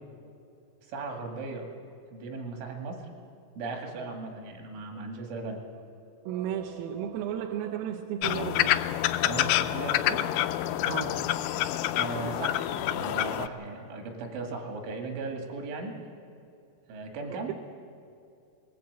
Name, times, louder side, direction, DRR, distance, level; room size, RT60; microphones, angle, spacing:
voice 1, 0.9-1.7 2.1-3.1 3.6-5.6 9.2-10.2 11.9-16.0 16.9-17.5, right 3 dB, 70° right, 2 dB, 4.6 m, -37 dB
voice 2, 6.3-8.8 9.1-9.5 10.9-11.9 17.3-17.5, right 10 dB, 90° right, 3 dB, 3.6 m, -35 dB
sound 1, 8.2-13.5, left 13 dB, 90° left, 2.5 m, -27 dB
19.5 x 19.5 x 8.2 m, 2.6 s
omnidirectional pair, 5.9 m